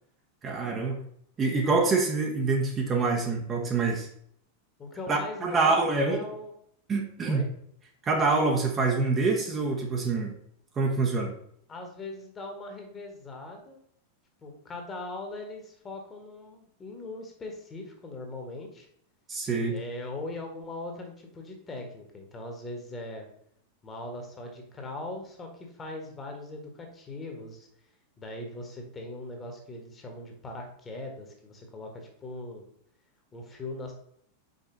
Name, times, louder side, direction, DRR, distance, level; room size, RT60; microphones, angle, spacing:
voice 1, 0.4-1.1 1.4-4.1 5.1-6.2 6.9-7.4 8.0-10.3 10.8-11.3 19.3-19.8, right 3 dB, 25° right, 1 dB, 0.9 m, -26 dB
voice 2, 4.8-6.5 7.2-7.5 11.7-13.8 14.4-18.9 19.7-23.3 23.8-27.7 28.2-32.6 33.3-33.9, left 2 dB, 20° left, 2 dB, 1.5 m, -40 dB
5.3 x 4.8 x 3.9 m, 0.67 s
figure-of-eight pair, 90°, 0 cm